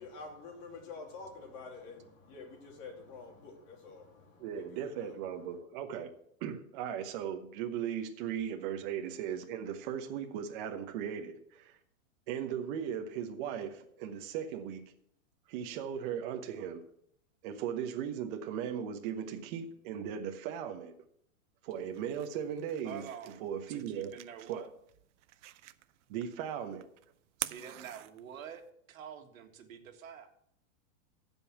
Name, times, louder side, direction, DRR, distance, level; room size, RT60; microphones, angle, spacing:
voice 1, 0.0-5.6, left 4 dB, 40° left, 2.9 m, -48 dB
voice 2, 4.4-6.1 6.4-11.8 12.3-14.8 15.5-16.8 17.4-21.0 21.6-24.1 24.5-24.6 26.1-26.8, right 8 dB, 40° right, 1.0 m, -37 dB
sound 1, 21.7-28.7, right 15 dB, 60° right, 0.6 m, -47 dB
voice 3, 22.8-24.7 27.4-28.6 28.9-30.3, right 8 dB, 80° right, 1.7 m, -47 dB
14.5 x 5.5 x 5.9 m
supercardioid pair, 150°, 40 cm